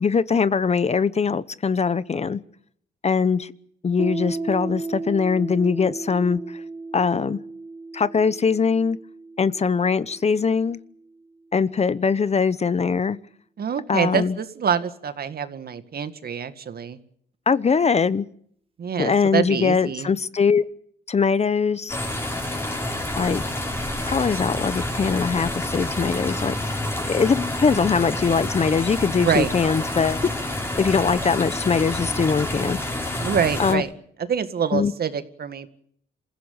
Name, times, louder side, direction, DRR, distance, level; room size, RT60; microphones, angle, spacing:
voice 1, 0.0-2.4 3.0-3.5 3.8-6.6 6.9-7.4 7.9-9.0 9.4-10.8 11.5-13.2 13.9-14.4 17.5-18.2 19.0-20.6 21.1-22.0 23.2-23.4 24.1-26.7 27.1-30.3 30.8-32.8 33.1-33.2 33.6-33.8 34.7-34.9, left 5 dB, 35° left, 16 dB, 0.9 m, -22 dB
Piano, 4.0-11.2, right 3 dB, 30° right, 2.3 m, -35 dB
voice 2, 13.6-17.0 18.8-20.1 29.2-29.5 33.2-33.9 34.2-35.7, right 7 dB, 50° right, 10 dB, 2.1 m, -25 dB
sound 1, 21.9-33.8, left 1 dB, 10° left, 5.5 m, -28 dB
27.0 x 16.0 x 8.9 m, 0.66 s
cardioid pair, 90°, 20 cm